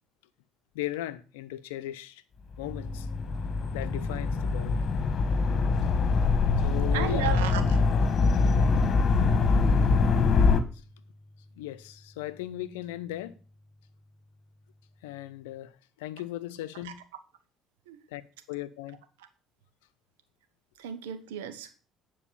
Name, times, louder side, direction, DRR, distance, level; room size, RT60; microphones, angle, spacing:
voice 1, 0.7-2.2 2.6-3.1 3.7-4.8 6.6-7.4 11.6-13.3 15.0-17.0 18.1-18.2 18.5-19.0, left 14 dB, 80° left, 0.7 m, -37 dB
sound 1, 2.6-10.6, left 4 dB, 45° left, 1.5 m, -24 dB
sound 2, 2.6-15.6, left 1 dB, 30° right, 4.0 m, -48 dB
voice 2, 6.9-7.8 16.8-16.9 17.9-18.0 20.8-21.7, right 9 dB, 85° right, 1.3 m, -34 dB
9.8 x 4.9 x 7.1 m
hypercardioid pair, 60°, 0 cm